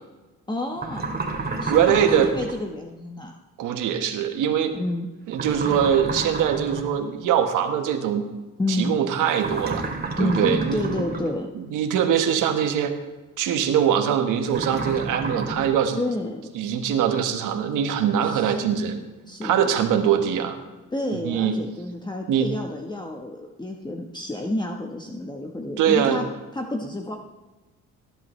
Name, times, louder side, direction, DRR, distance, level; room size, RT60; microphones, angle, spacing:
voice 1, 0.5-1.1 1.6-3.3 4.7-5.1 8.6-8.9 10.2-11.5 15.9-16.4 18.2-19.0 19.2-19.7 20.9-26.3 26.5-27.2, left 2 dB, 15° left, 2 dB, 1.2 m, -29 dB
sound 1, 0.8-2.6 5.3-7.0 9.4-11.3 14.5-15.7, right 3 dB, 30° right, 2.5 m, -31 dB
voice 2, 1.7-2.3 3.6-4.7 5.3-8.2 8.7-9.9 10.2-11.0 11.5-12.9 13.4-16.0 16.5-19.0 19.4-20.5 21.1-21.6 22.3-22.5 25.8-26.2, right 8 dB, 90° right, 6 dB, 1.5 m, -22 dB
19.0 x 11.0 x 3.3 m, 1.2 s
cardioid pair, 90°, 30 cm